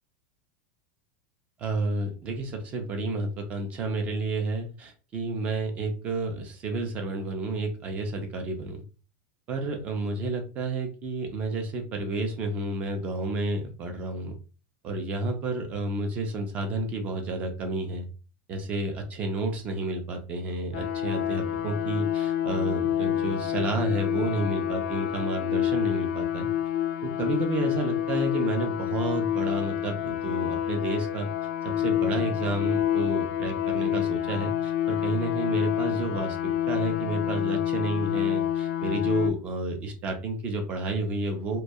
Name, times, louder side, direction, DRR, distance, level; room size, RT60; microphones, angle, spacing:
voice 1, 1.6-8.8 9.5-14.3 14.8-18.1 18.5-26.5 27.0-31.3 31.6-41.6, right 2 dB, 25° right, 4 dB, 0.4 m, -30 dB
sound 1, 20.7-39.3, left 11 dB, 80° left, 0.4 m, -28 dB
2.2 x 2.2 x 2.6 m, 0.34 s
supercardioid pair, 175°, 6 cm